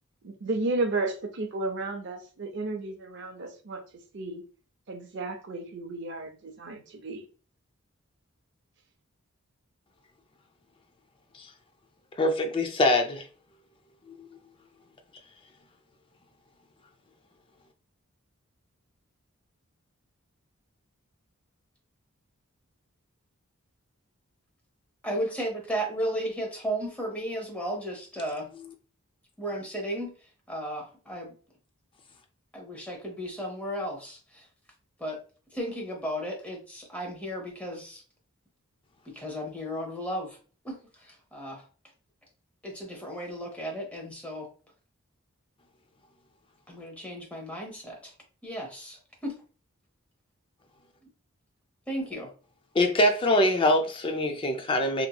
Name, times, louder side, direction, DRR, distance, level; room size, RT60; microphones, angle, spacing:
voice 1, 0.2-3.8 4.1-4.4 4.9-7.2, right 2 dB, 55° right, 0.5 m, -33 dB
voice 2, 12.2-13.3 14.2-14.3 52.7-55.1, left 1 dB, 25° left, 0.4 m, -24 dB
voice 3, 25.0-28.5 29.4-30.1 30.5-31.3 32.5-34.4 35.0-35.2 35.5-38.0 39.1-40.4 40.6-41.6 42.6-44.5 46.7-48.1 48.4-49.3 51.9-52.3, equal, 5° left, 0.7 m, -34 dB
2.9 x 2.6 x 2.2 m
head